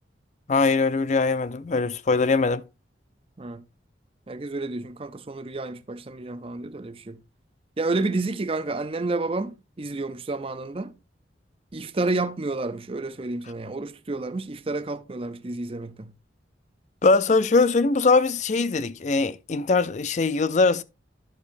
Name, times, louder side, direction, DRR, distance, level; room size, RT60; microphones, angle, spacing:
voice 1, 0.5-2.6 17.0-20.8, left 3 dB, 40° left, 0.5 m, -21 dB
voice 2, 4.3-7.2 7.8-11.0 11.7-16.1, right 2 dB, 30° right, 0.6 m, -30 dB
11.5 x 6.4 x 2.6 m
head